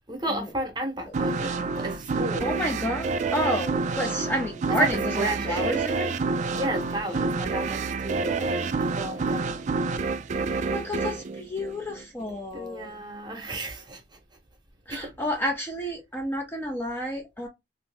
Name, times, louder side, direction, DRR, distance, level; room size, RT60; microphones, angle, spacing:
voice 1, 0.1-2.6 4.7-5.8 6.5-9.5 12.5-14.2 14.9-15.2, right 2 dB, 25° right, 0.9 m, -32 dB
sound 1, 1.1-12.3, right 4 dB, 40° right, 0.3 m, -28 dB
voice 2, 2.4-6.1 10.6-12.9 14.9-17.5, equal, 10° left, 0.5 m, -30 dB
2.9 x 2.5 x 3.3 m
head